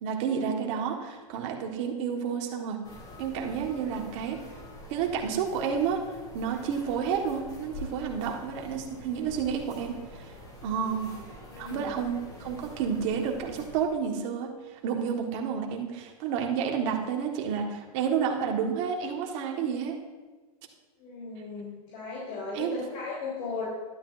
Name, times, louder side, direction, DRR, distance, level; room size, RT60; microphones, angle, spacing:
voice 1, 0.0-2.8 3.2-4.4 4.9-10.3 10.6-11.1 11.6-20.0 22.5-22.8, right 7 dB, 50° right, 1 dB, 1.5 m, -30 dB
sound 1, 2.8-13.9, left 1 dB, 20° left, 3.2 m, -46 dB
voice 2, 11.5-11.9 21.0-23.6, left 4 dB, 60° left, -7 dB, 3.5 m, -36 dB
12.0 x 11.0 x 2.6 m, 1.3 s
hypercardioid pair, 130°, 19 cm